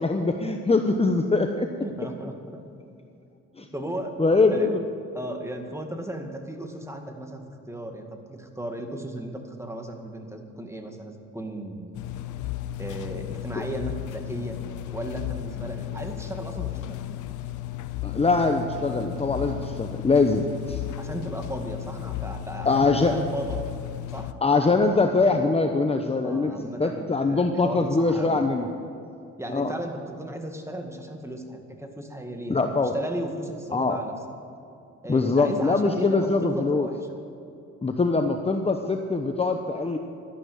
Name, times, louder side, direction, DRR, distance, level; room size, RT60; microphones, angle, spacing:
voice 1, 0.0-1.7 3.6-3.7 4.2-4.8 13.6-13.7 18.0-20.8 22.6-23.1 24.4-26.5 26.8-28.7 29.5-29.7 32.5-32.9 33.7-34.0 35.1-36.9 37.8-40.0, left 3 dB, 20° left, 4 dB, 1.0 m, -23 dB
voice 2, 1.8-2.6 3.6-4.1 4.5-4.7 5.1-12.0 12.8-14.6 14.9-17.0 21.0-23.7 24.1-24.3 26.2-28.5 29.4-32.6 32.9-34.1 35.0-37.0, right 1 dB, 10° right, 4 dB, 2.1 m, -35 dB
sound 1, 11.9-24.3, left 13 dB, 80° left, 0.8 m, -34 dB
12.5 x 11.5 x 8.1 m, 2.6 s
cardioid pair, 90°, 30 cm